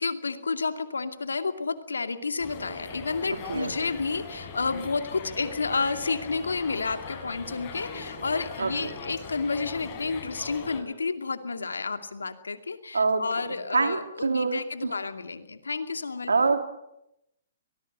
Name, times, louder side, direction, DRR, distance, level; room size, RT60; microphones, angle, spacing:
voice 1, 0.0-16.3, left 4 dB, 90° left, 8 dB, 2.5 m, -31 dB
sound 1, 2.4-10.8, left 4 dB, 35° left, 6.2 m, -40 dB
voice 2, 8.6-8.9 12.9-13.2 13.7-14.9 16.3-16.6, right 4 dB, 90° right, 6 dB, 3.4 m, -25 dB
23.5 x 20.0 x 8.1 m, 0.85 s
hypercardioid pair, 135°, 0 cm